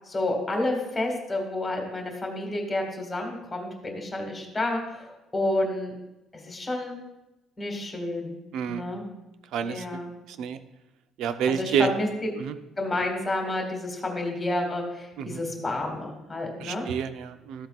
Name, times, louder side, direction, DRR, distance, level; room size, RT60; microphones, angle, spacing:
voice 1, 0.1-5.9 6.3-7.0 7.6-8.4 8.7-9.0 9.6-10.1 11.5-12.1 12.8-16.9, left 2 dB, 15° left, 2 dB, 1.5 m, -30 dB
voice 2, 8.5-8.8 9.5-9.8 10.3-10.6 11.2-11.9 12.4-12.5 15.2-15.4 16.6-17.7, right 8 dB, 65° right, 10 dB, 0.5 m, -28 dB
13.5 x 8.1 x 2.4 m, 0.96 s
cardioid pair, 180°, 0 cm